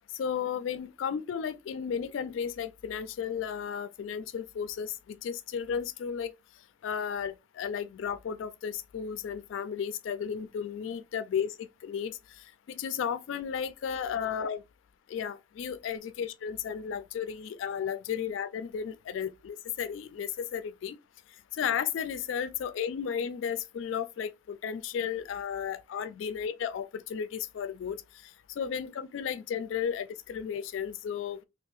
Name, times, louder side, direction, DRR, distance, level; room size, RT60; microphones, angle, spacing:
voice 1, 0.2-6.3 6.8-11.5 11.8-12.2 12.7-14.6 15.1-21.0 21.6-28.0 28.6-31.4, left 7 dB, 85° left, 0.3 m, -34 dB
2.7 x 2.3 x 3.7 m
head